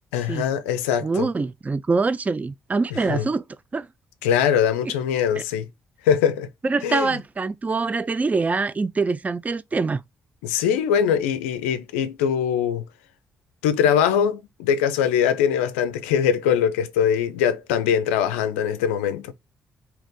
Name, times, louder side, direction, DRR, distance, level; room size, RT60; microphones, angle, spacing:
voice 1, 0.1-1.3 3.1-3.2 4.2-5.7 6.0-6.5 6.8-7.1 10.4-12.8 13.6-19.3, left 8 dB, 80° left, 0.4 m, -22 dB
voice 2, 1.0-3.4 3.7-3.9 4.9-5.0 5.3-5.4 6.6-10.0, right 4 dB, 20° right, 0.3 m, -24 dB
2.8 x 2.4 x 3.6 m
hypercardioid pair, 40°, 7 cm